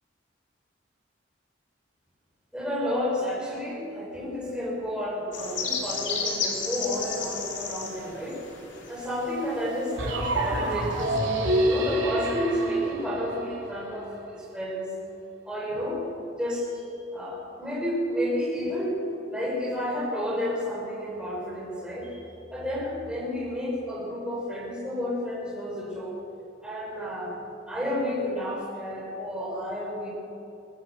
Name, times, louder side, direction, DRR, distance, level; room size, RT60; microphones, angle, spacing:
voice 1, 2.5-8.4 8.9-11.2 11.6-14.9 15.4-16.0 16.4-16.8 17.1-19.0 19.3-26.1 26.6-27.3 27.7-30.1, equal, 5° right, -5 dB, 5.8 m, -31 dB
sound 1, 5.3-11.1, left 5 dB, 70° left, 3.5 m, -34 dB
sound 2, 10.0-13.9, right 1 dB, 85° right, 3.9 m, -27 dB
21.0 x 16.0 x 7.9 m, 2.7 s
head